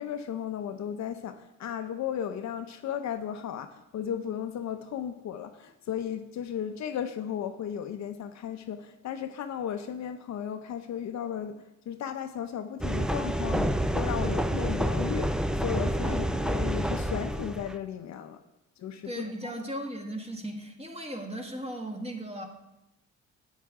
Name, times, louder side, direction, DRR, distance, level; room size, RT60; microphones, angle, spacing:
voice 1, 0.0-18.4 18.8-19.3, left 9 dB, 65° left, 0.7 m, -35 dB
sound 1, 12.8-17.7, right 1 dB, ahead, 0.4 m, -28 dB
voice 2, 19.0-22.4, right 1 dB, 20° right, 1.8 m, -37 dB
10.5 x 8.3 x 3.7 m
cardioid pair, 90°, 30 cm